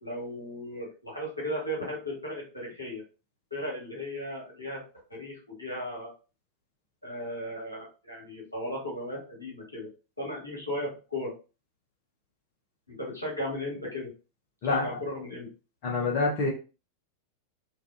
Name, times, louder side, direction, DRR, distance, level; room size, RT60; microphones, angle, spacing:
voice 1, 0.0-3.0 3.5-4.8 5.1-6.1 7.0-9.9 10.2-11.3 12.9-14.1 14.6-15.5, left 1 dB, 85° left, -4 dB, 1.2 m, -36 dB
voice 2, 15.8-16.5, left 3 dB, 45° left, -3 dB, 0.7 m, -26 dB
2.6 x 2.4 x 2.3 m, 0.33 s
figure-of-eight pair, 90°, 0 cm